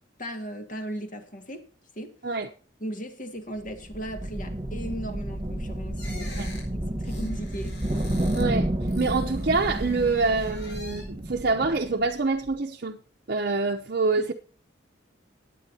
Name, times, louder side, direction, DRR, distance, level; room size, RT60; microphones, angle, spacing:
voice 1, 0.2-1.6 2.0-2.1 2.8-7.8 14.2-14.3, equal, 45° left, 2.0 m, -37 dB
sound 1, 3.6-12.1, right 1 dB, 25° right, 1.3 m, -30 dB
sound 2, 6.0-8.5 8.8-11.2 11.7-12.5, left 2 dB, 60° left, 6.4 m, -46 dB
voice 2, 8.4-13.0 13.3-14.3, right 3 dB, 50° right, 0.8 m, -26 dB
19.0 x 8.7 x 2.8 m
head